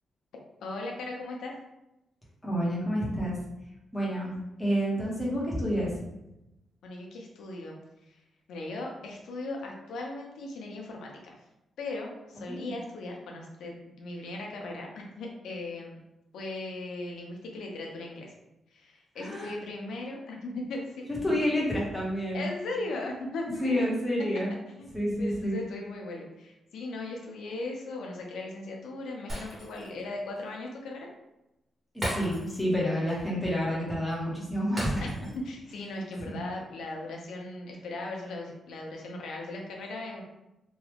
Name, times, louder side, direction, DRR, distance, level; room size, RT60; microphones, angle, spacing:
voice 1, 0.6-1.5 6.8-7.8 8.1-8.2 8.5-11.4 11.8-16.0 16.3-18.3 18.7-21.0 22.3-23.8 24.8-31.1 35.4-40.2, left 2 dB, 90° left, 0 dB, 0.6 m, -38 dB
voice 2, 2.4-3.4 3.9-6.0 12.5-12.7 19.2-19.5 21.1-22.5 23.6-24.5 24.9-25.6 31.9-35.3 36.2-36.4, equal, 5° left, -6 dB, 1.0 m, -29 dB
Shatter, 29.3-30.0 30.4-30.5 32.0-32.8 33.1-33.2 34.8-35.5 35.8-36.0, equal, 20° right, 1.3 m, -36 dB
3.0 x 2.3 x 3.3 m, 0.91 s
wide cardioid pair, 145°, 0 cm